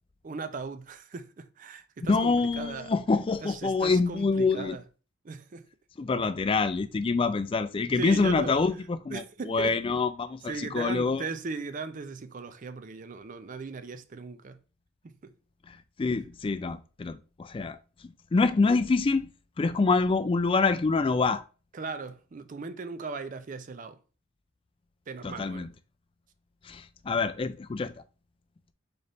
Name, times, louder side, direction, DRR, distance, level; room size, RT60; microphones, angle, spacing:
voice 1, 0.2-2.9 3.4-4.8 5.2-5.7 8.0-8.6 9.1-9.8 10.5-14.6 15.0-15.3 16.1-16.2 21.7-24.0 25.1-25.7, right 4 dB, 40° right, 0.4 m, -38 dB
voice 2, 2.1-4.8 6.0-11.2 15.7-17.8 18.0-19.3 19.6-21.4 25.2-25.7 26.6-27.9, left 4 dB, 25° left, 0.3 m, -26 dB
3.9 x 3.4 x 4.0 m
head